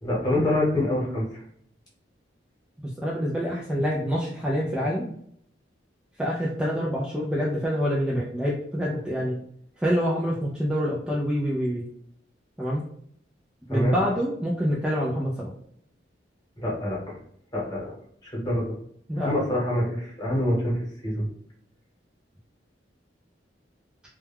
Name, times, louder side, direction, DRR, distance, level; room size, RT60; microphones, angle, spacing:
voice 1, 0.0-1.4 13.7-14.0 16.6-17.2 17.5-17.9 18.2-18.8 19.2-20.8 21.0-21.3, left 1 dB, 25° left, -5 dB, 1.0 m, -26 dB
voice 2, 2.8-5.1 6.2-9.4 9.8-11.8 12.6-12.8 13.7-15.5 19.1-19.4, equal, 5° right, -5 dB, 0.3 m, -26 dB
2.2 x 2.1 x 3.3 m, 0.67 s
head